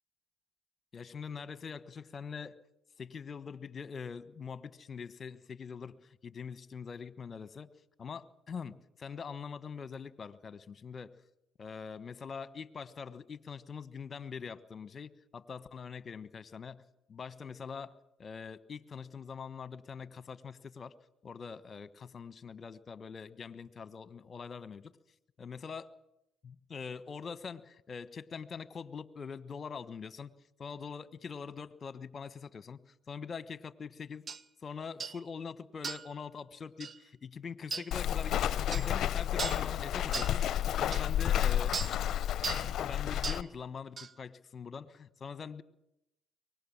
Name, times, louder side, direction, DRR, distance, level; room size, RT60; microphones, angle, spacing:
voice 1, 0.9-2.6 3.0-7.7 8.0-11.1 11.6-16.8 17.1-17.9 18.2-20.9 21.2-24.9 25.4-25.9 26.4-30.3 30.6-34.2 34.6-41.8 42.5-45.6, left 6 dB, 45° left, 14 dB, 1.2 m, -43 dB
sound 1, 34.3-34.4 35.0-35.2 35.8-36.1 36.8-37.0 37.7-37.9 38.7-38.9 39.4-39.7 40.1-40.4 40.9-41.0 41.7-42.0 42.4-42.7 43.2-43.5 44.0-44.1, right 5 dB, 45° right, 1.0 m, -37 dB
Walk footsteps, 37.9-43.4, left 11 dB, 60° left, 0.7 m, -31 dB
24.0 x 20.0 x 7.3 m, 0.85 s
hypercardioid pair, 60°, 0 cm